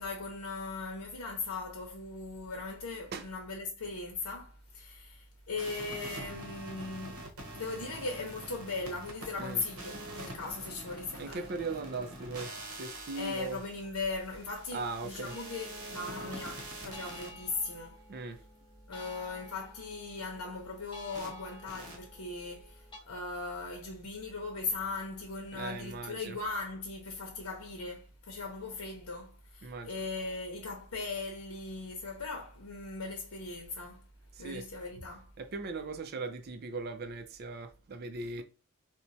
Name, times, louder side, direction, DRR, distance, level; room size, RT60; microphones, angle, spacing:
voice 1, 0.0-7.3 7.5-11.5 13.1-18.0 18.9-34.0 34.4-35.3, left 3 dB, 85° left, 0.7 m, -39 dB
sound 1, 5.6-17.3 21.1-21.3 21.7-22.0, right 1 dB, 85° right, 0.9 m, -45 dB
voice 2, 11.2-13.6 14.7-15.3 18.1-18.4 25.5-26.4 29.6-29.9 34.4-34.7 35.4-38.4, right 3 dB, 45° right, 0.4 m, -39 dB
sound 2, 15.3-23.0, equal, 20° left, 0.7 m, -53 dB
4.3 x 2.1 x 2.6 m
head